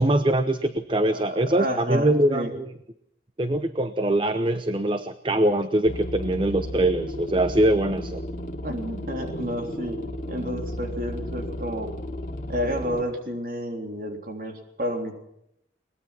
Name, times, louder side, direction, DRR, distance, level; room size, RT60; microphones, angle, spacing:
voice 1, 0.0-2.7 3.4-8.2, right 1 dB, 30° right, 11 dB, 0.8 m, -23 dB
voice 2, 0.9-2.5 8.6-10.0 10.3-11.9 12.5-15.1, equal, 50° right, 3 dB, 3.5 m, -30 dB
sound 1, 5.9-13.0, left 1 dB, 50° left, 2.7 m, -34 dB
22.5 x 20.5 x 6.0 m, 0.77 s
head